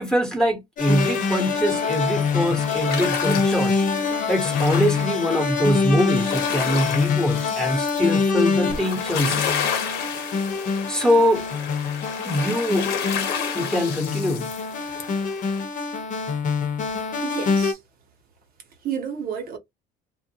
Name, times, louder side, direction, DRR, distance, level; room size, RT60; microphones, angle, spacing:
voice 1, 0.0-3.8 4.3-9.5 10.9-11.4 12.2-13.0 13.5-14.5, equal, 5° left, 1.2 m, -23 dB
sound 1, 0.8-15.6, left 7 dB, 80° left, 1.0 m, -32 dB
sound 2, 0.8-17.7, left 5 dB, 50° left, 0.9 m, -25 dB
voice 2, 17.2-17.8 18.8-19.6, right 8 dB, 60° right, 0.9 m, -30 dB
2.5 x 2.1 x 2.8 m
cardioid pair, 110°, 17 cm